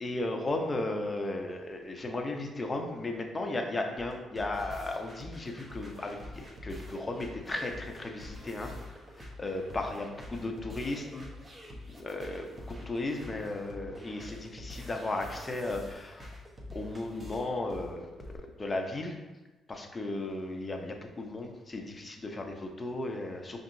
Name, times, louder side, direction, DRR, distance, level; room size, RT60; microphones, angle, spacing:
voice 1, 0.0-8.7 9.2-11.3 11.9-16.4 16.7-18.1 18.4-19.2 19.7-23.6, left 2 dB, 25° left, 3 dB, 0.6 m, -35 dB
sound 1, 4.0-18.4, left 1 dB, 25° right, 0.9 m, -46 dB
5.2 x 2.8 x 2.6 m, 1.1 s
cardioid pair, 90°, 0 cm